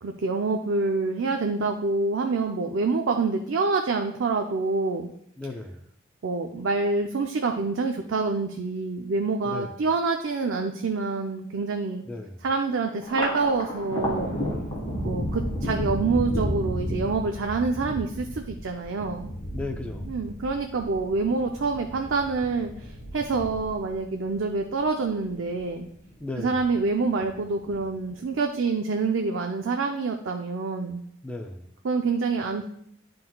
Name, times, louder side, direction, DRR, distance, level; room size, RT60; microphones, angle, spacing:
voice 1, 0.0-5.1 6.2-12.0 12.4-14.3 15.0-19.3 20.1-25.9 26.4-31.0 31.8-32.6, right 4 dB, 70° right, 4 dB, 0.5 m, -27 dB
voice 2, 5.4-5.9 9.4-9.7 12.1-12.5 19.5-20.1 26.2-26.6 31.2-31.7, left 2 dB, 5° left, 3 dB, 0.4 m, -35 dB
Thunder, 13.0-25.7 26.1-26.9 27.2-28.1, equal, 25° left, 1.7 m, -32 dB
10.5 x 3.8 x 2.3 m, 0.69 s
head